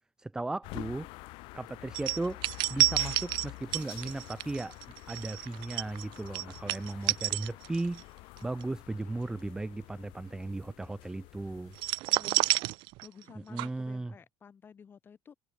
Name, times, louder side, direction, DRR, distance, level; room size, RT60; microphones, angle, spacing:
voice 1, 0.2-1.1 1.5-2.4 2.7-4.8 5.1-8.0 8.4-11.7 13.3-14.1, right 2 dB, 5° right, 0.8 m, -36 dB
sound 1, 0.6-11.9, left 24 dB, 60° left, 1.3 m, -47 dB
sound 2, 1.9-8.0 8.4-8.6 11.8-13.3 13.6-13.7, right 21 dB, 55° right, 0.5 m, -30 dB
voice 2, 12.0-12.5 13.0-15.4, left 6 dB, 20° left, 7.5 m, -53 dB
cardioid pair, 170°, 10 cm